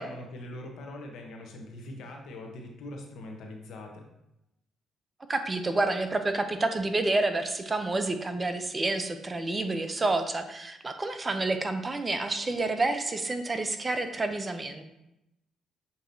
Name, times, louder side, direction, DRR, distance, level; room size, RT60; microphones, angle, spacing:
voice 1, 0.0-4.1, left 1 dB, 70° left, 2 dB, 0.9 m, -42 dB
voice 2, 5.3-14.8, right 2 dB, 30° right, 8 dB, 0.5 m, -29 dB
6.8 x 2.9 x 2.7 m, 0.87 s
supercardioid pair, 65°, 0 cm